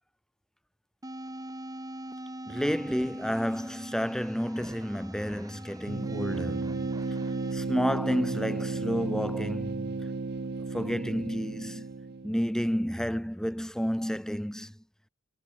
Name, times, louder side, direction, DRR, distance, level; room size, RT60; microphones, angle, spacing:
sound 1, 1.0-7.5, right 1 dB, 15° right, 3.7 m, -43 dB
voice 1, 2.4-6.8 7.5-10.1 10.7-11.9 12.2-14.8, equal, 5° left, 1.4 m, -31 dB
sound 2, 5.9-12.5, right 3 dB, 45° right, 0.6 m, -33 dB
head